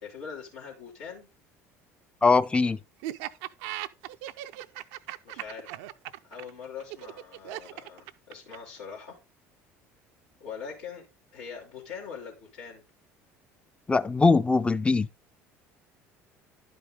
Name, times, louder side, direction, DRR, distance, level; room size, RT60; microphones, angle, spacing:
voice 1, 0.0-1.3 5.2-5.8 6.2-9.2 10.4-11.1 11.3-12.8, left 6 dB, 80° left, 2.4 m, -42 dB
voice 2, 2.2-2.8 13.9-15.1, left 4 dB, 15° left, 0.5 m, -21 dB
Laughter, 3.0-8.8, right 14 dB, 75° right, 0.5 m, -38 dB
11.0 x 5.3 x 3.7 m
hypercardioid pair, 70°, 7 cm